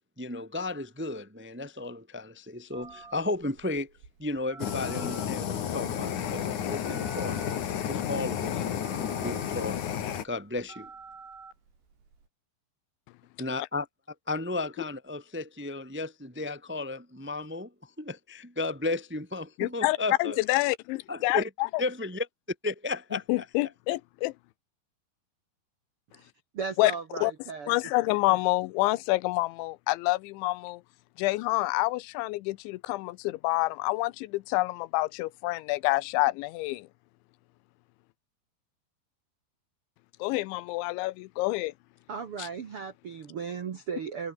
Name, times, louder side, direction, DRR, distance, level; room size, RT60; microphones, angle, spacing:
voice 1, 0.2-3.9 4.2-7.4 7.9-8.6 9.0-9.8 10.2-10.9 13.4-13.9 14.3-20.4 21.1-21.5 21.8-22.3 22.6-23.4, left 2 dB, 10° right, 0.5 m, -34 dB
Telephone, 2.7-12.3, right 5 dB, 70° right, 9.2 m, -50 dB
Fire, 4.6-10.2, left 9 dB, 50° left, 2.9 m, -31 dB
voice 2, 19.6-21.7 23.3-24.3 26.8-26.9 27.2-27.3 27.7-30.8 31.2-36.9 40.2-41.7, left 20 dB, 90° left, 3.0 m, -27 dB
voice 3, 26.1-27.7 42.1-44.3, right 6 dB, 85° right, 1.2 m, -36 dB
omnidirectional pair, 5.3 m